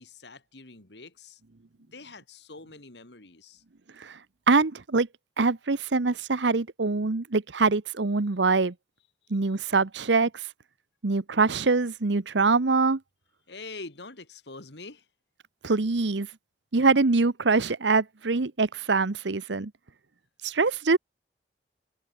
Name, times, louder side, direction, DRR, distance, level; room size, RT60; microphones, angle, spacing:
voice 1, 0.0-1.4 1.9-3.6 9.5-9.6 13.5-15.1, left 3 dB, 75° left, 2.5 m, -45 dB
voice 2, 4.5-5.1 5.4-8.7 9.3-10.5 11.0-13.0 15.6-16.3 16.7-19.7 20.4-21.0, right 3 dB, 85° right, 0.9 m, -24 dB
head